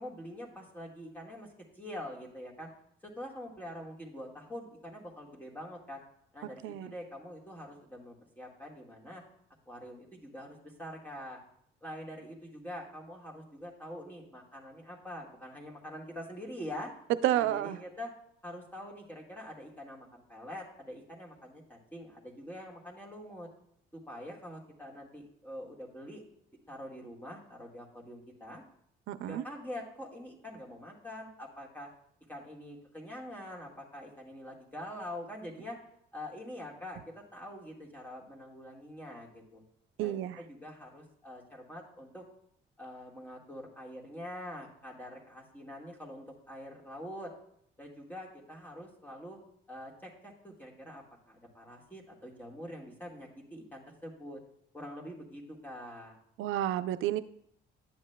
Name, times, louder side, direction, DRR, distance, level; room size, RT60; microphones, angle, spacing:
voice 1, 0.0-1.5 1.7-2.7 3.0-6.0 6.3-9.2 9.7-11.4 11.8-16.9 17.3-18.1 18.4-23.5 23.9-26.2 26.7-28.6 29.2-31.9 32.3-35.8 36.1-39.6 40.0-42.3 42.8-47.3 47.8-49.4 49.7-54.4 54.7-56.2, left 1 dB, 10° left, -2 dB, 1.7 m, -45 dB
voice 2, 17.2-17.8 29.1-29.4 40.0-40.4 56.4-57.2, right 13 dB, 90° right, 13 dB, 0.4 m, -30 dB
10.5 x 7.1 x 2.2 m, 0.70 s
cardioid pair, 90°, 20 cm